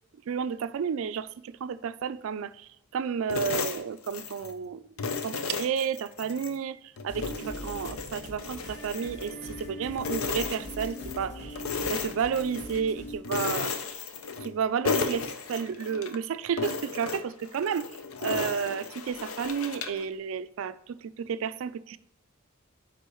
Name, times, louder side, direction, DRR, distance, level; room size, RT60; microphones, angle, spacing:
voice 1, 0.3-4.8 5.2-6.8 7.0-11.6 11.9-13.7 14.4-17.9 18.2-22.0, right 7 dB, 70° right, 0.3 m, -31 dB
sound 1, 3.3-4.6 5.0-6.6 7.0-9.7 10.0-11.2 11.6-12.8 13.2-14.6 14.8-16.2 16.6-20.0, left 5 dB, 85° left, 0.7 m, -34 dB
sound 2, 7.1-13.2, left 1 dB, 60° left, 2.2 m, -41 dB
9.1 x 3.8 x 3.0 m
head